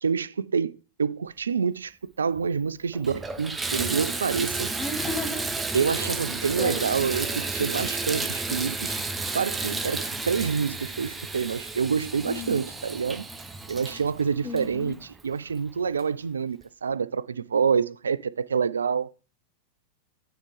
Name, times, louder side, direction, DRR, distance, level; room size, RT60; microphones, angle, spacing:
voice 1, 0.0-1.9 2.2-4.7 5.7-9.0 9.3-13.3 13.7-19.1, right 6 dB, 70° right, 0.3 m, -27 dB
Water tap faucet / Bathtub (filling or washing), 2.4-2.5 2.9-15.3 16.0-16.1 16.6-16.7, right 3 dB, 10° right, 0.8 m, -32 dB
voice 2, 4.8-5.5 6.0-6.9 12.2-12.7 14.4-15.0, left 3 dB, 20° left, 2.1 m, -35 dB
9.5 x 4.7 x 3.3 m
figure-of-eight pair, 90°, 0 cm